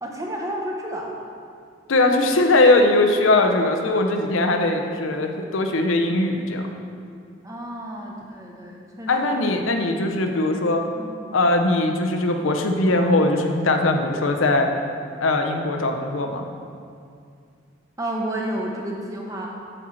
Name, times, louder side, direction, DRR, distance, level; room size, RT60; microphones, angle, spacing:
voice 1, 0.0-1.2 7.4-9.4 11.0-11.1 18.0-19.5, right 1 dB, 15° right, -1 dB, 0.8 m, -31 dB
voice 2, 1.9-6.7 9.1-10.8 11.3-14.7 15.2-16.4, left 2 dB, 80° left, 4 dB, 0.7 m, -20 dB
7.7 x 4.4 x 6.3 m, 2.3 s
head